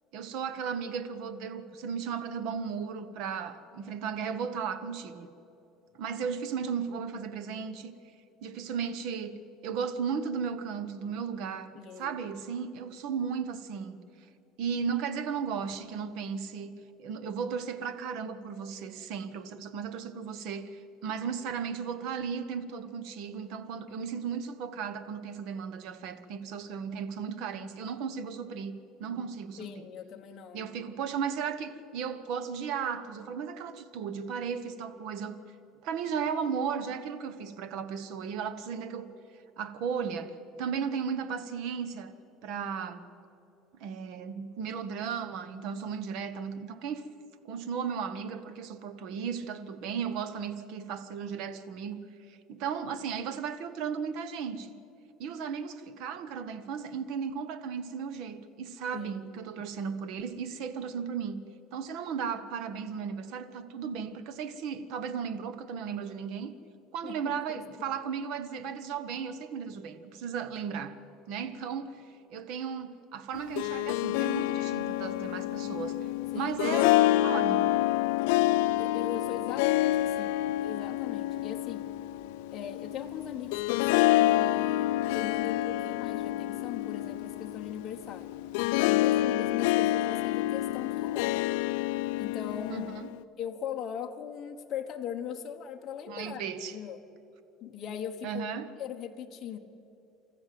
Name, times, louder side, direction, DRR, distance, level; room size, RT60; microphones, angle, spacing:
voice 1, 0.1-5.3 5.9-7.9 8.4-9.4 9.6-11.7 12.0-14.0 14.6-16.7 17.0-29.8 30.5-35.4 35.8-39.1 39.6-42.1 42.4-43.1 43.8-47.1 47.4-52.0 52.3-54.8 55.2-61.4 61.7-66.5 66.9-71.0 71.3-76.0 76.3-77.7 92.7-93.1 96.1-96.7 98.2-98.7, right 6 dB, 60° right, 12 dB, 1.2 m, -35 dB
voice 2, 11.8-12.2 29.6-30.7 58.9-59.4 67.0-67.6 76.3-76.6 78.8-81.9 82.5-88.3 88.8-91.6 92.2-92.9 93.4-96.4 96.7-97.0 97.6-98.5 98.8-99.6, left 8 dB, 35° left, 3 dB, 1.1 m, -39 dB
Harp, 73.3-93.2, left 15 dB, 90° left, 0.4 m, -28 dB
28.5 x 14.0 x 7.7 m, 2.9 s
cardioid pair, 165°, 0 cm